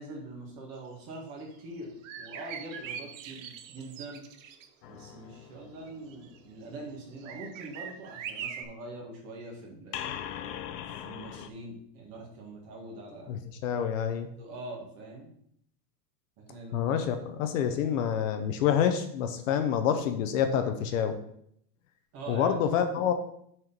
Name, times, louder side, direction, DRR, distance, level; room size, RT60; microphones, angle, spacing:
voice 1, 0.0-4.3 4.9-10.1 11.0-13.4 14.4-15.3 16.4-17.0 22.1-22.5, right 2 dB, 30° right, -1 dB, 1.7 m, -43 dB
sound 1, 1.5-1.6 2.0-4.7 5.9-6.4 7.2-8.6, right 8 dB, 55° right, 0.7 m, -41 dB
sound 2, 4.8-6.8 9.9-11.5, left 10 dB, 85° left, 0.8 m, -41 dB
voice 2, 13.3-14.3 16.7-21.2 22.3-23.1, left 8 dB, 55° left, 8 dB, 0.8 m, -27 dB
6.5 x 4.5 x 5.1 m, 0.70 s
supercardioid pair, 180°, 47 cm